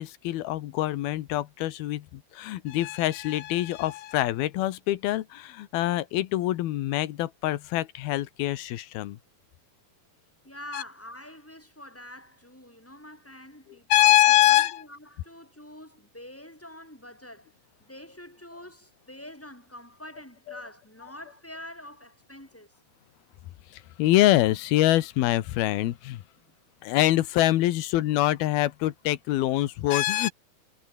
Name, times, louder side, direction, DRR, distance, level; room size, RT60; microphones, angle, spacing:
voice 1, 0.0-9.2 10.7-10.8 13.9-14.8 20.5-20.6 23.7-26.2 26.8-30.3, left 15 dB, 90° left, 3.0 m, -24 dB
voice 2, 10.4-22.8 26.4-26.5, left 1 dB, 5° left, 7.5 m, -46 dB
omnidirectional pair, 4.3 m